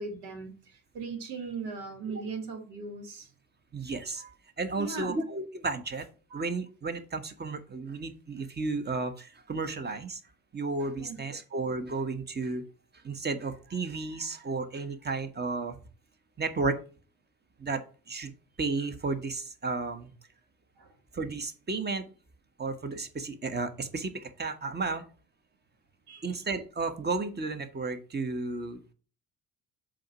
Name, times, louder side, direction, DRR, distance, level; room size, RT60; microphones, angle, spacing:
voice 1, 0.0-3.3 4.2-4.3 4.8-5.2 6.3-6.4 10.9-11.2 20.8-21.0 26.1-26.3, right 4 dB, 65° right, 1.6 m, -39 dB
voice 2, 3.7-4.2 4.6-6.1 6.3-10.2 10.5-12.6 13.0-15.8 16.4-16.8 17.6-18.3 18.6-20.1 21.1-22.1 22.6-25.1 26.2-28.8, right 3 dB, 25° right, 1.1 m, -33 dB
7.5 x 2.9 x 6.0 m
figure-of-eight pair, 50°, 43 cm